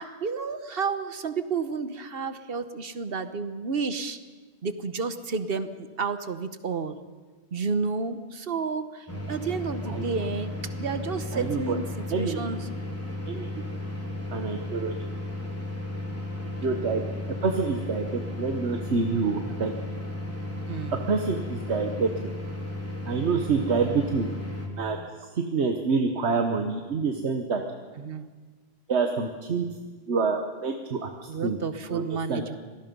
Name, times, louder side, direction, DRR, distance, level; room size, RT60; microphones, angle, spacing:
voice 1, 0.0-4.2 4.6-7.0 7.5-11.8 12.1-12.6 16.7-16.8 20.7-21.0 28.0-28.3 31.3-32.6, right 5 dB, 60° right, 11 dB, 1.3 m, -31 dB
sound 1, 9.1-24.7, left 1 dB, 15° left, 3.0 m, -34 dB
voice 2, 11.3-11.8 12.1-12.4 13.3-13.5 14.3-14.9 16.6-17.0 17.4-18.1 18.4-19.7 21.1-22.1 23.1-24.3 24.8-25.0 25.5-27.6 28.9-29.7 30.1-31.1 31.4-31.6 31.9-32.6, right 4 dB, 85° right, 5 dB, 1.5 m, -27 dB
26.0 x 18.5 x 5.4 m, 1.4 s
omnidirectional pair, 1.1 m